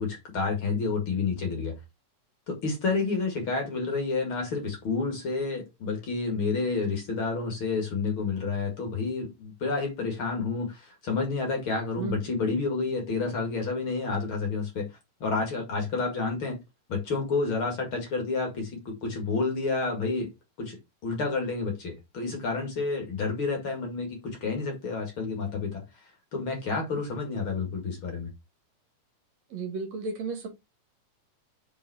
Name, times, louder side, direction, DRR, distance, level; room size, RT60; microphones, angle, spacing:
voice 1, 0.0-1.7 2.5-14.9 15.2-16.6 16.9-20.3 20.6-20.8 21.0-25.8 26.3-28.3, left 4 dB, 45° left, 2.4 m, -29 dB
voice 2, 12.0-12.3 29.5-30.5, right 5 dB, 60° right, 2.7 m, -34 dB
5.5 x 5.3 x 4.7 m
omnidirectional pair, 3.6 m